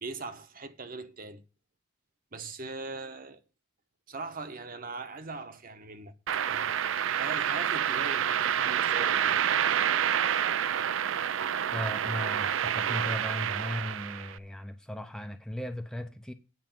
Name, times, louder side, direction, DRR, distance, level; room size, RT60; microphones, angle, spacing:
voice 1, 0.0-1.4 2.3-3.4 4.1-9.5, right 3 dB, 45° right, 1.0 m, -41 dB
sound 1, 6.3-14.4, right 9 dB, 70° right, 0.4 m, -28 dB
voice 2, 11.7-16.3, left 1 dB, 5° left, 0.6 m, -37 dB
9.0 x 4.9 x 7.7 m
head